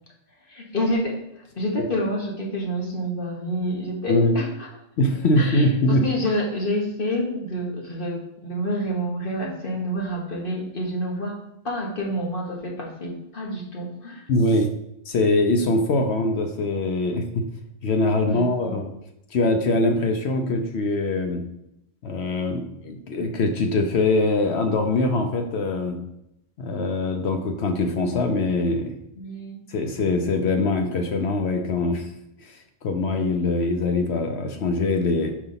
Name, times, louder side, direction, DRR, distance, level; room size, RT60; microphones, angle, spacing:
voice 1, 0.5-4.5 5.4-11.4 11.6-14.2 18.3-18.8 29.1-29.6, equal, 45° left, -2 dB, 1.5 m, -28 dB
voice 2, 5.0-6.0 14.3-14.7 15.1-17.4 17.8-18.9 19.3-21.4 22.0-26.0 26.6-29.0 29.7-32.1 32.4-35.3, left 2 dB, 60° left, 4 dB, 0.9 m, -23 dB
4.9 x 4.0 x 5.6 m, 0.82 s
omnidirectional pair, 1.4 m